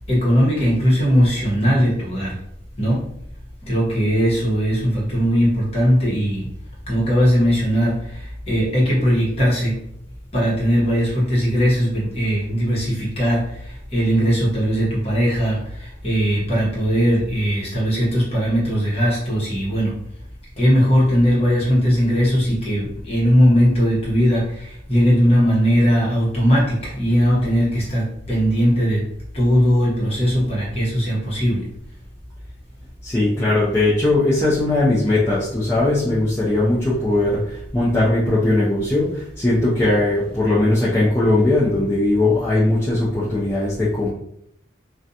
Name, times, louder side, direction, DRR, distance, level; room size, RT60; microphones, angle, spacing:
voice 1, 0.1-2.4 2.8-3.0 3.7-6.5 6.9-9.7 10.3-13.4 13.9-19.9 20.6-29.0 29.3-31.6, equal, 30° left, -6 dB, 1.0 m, -19 dB
voice 2, 33.0-44.1, left 2 dB, 15° left, -8 dB, 0.4 m, -19 dB
2.4 x 2.2 x 2.7 m, 0.73 s
head